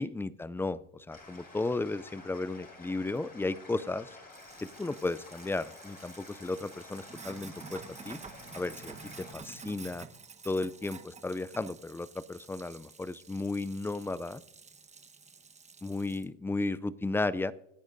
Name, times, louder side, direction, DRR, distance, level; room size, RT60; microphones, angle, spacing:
voice 1, 0.0-4.2 4.6-8.2 8.5-10.1 10.4-14.4 15.8-17.5, left 2 dB, 5° left, 18 dB, 0.3 m, -34 dB
sound 1, 1.1-9.4, left 3 dB, 25° left, 6.1 m, -51 dB
Sink (filling or washing), 4.3-16.2, right 4 dB, 20° right, 1.1 m, -50 dB
25.0 x 10.5 x 2.6 m, 0.87 s
supercardioid pair, 95°, 36 cm